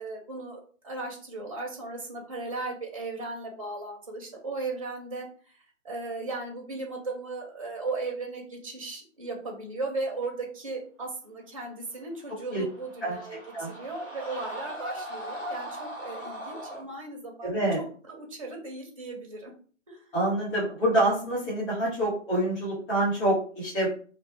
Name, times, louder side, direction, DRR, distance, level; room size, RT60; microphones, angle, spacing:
voice 1, 0.0-5.6 5.8-17.5 17.8-19.5 19.9-20.0, right 3 dB, 25° right, 0 dB, 0.5 m, -36 dB
sound 1, 12.4-16.8, right 1 dB, 80° left, 1.5 m, -39 dB
voice 2, 17.4-17.8 20.1-23.9, right 1 dB, 15° left, -9 dB, 1.1 m, -26 dB
2.3 x 2.3 x 2.7 m, 0.42 s
figure-of-eight pair, 145°, 39 cm